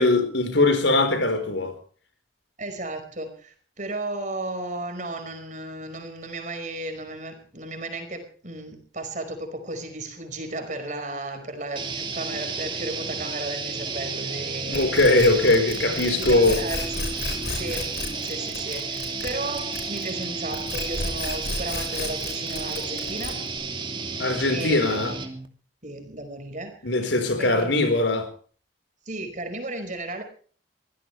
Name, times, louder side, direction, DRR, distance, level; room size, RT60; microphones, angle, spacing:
voice 1, 0.0-1.8 14.7-16.6 24.2-25.1 26.8-28.3, left 2 dB, 80° left, 4.4 m, -21 dB
voice 2, 2.6-15.2 16.1-23.5 24.5-25.2 25.8-27.1 27.4-28.0 29.1-30.2, right 2 dB, 40° right, 5.2 m, -34 dB
sound 1, 11.7-25.5, right 4 dB, 25° right, 2.5 m, -32 dB
sound 2, 14.7-20.2 20.5-23.6, left 3 dB, 60° left, 4.8 m, -33 dB
24.0 x 16.5 x 3.3 m
head